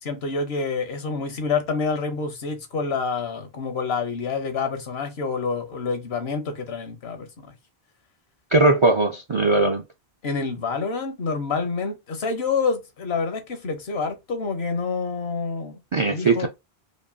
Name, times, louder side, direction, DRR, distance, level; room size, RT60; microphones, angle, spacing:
voice 1, 0.0-7.3 10.2-16.5, left 4 dB, 80° left, 1.2 m, -27 dB
voice 2, 8.5-9.8 15.9-16.5, right 2 dB, 50° right, 0.3 m, -19 dB
5.1 x 2.2 x 2.6 m
omnidirectional pair, 1.0 m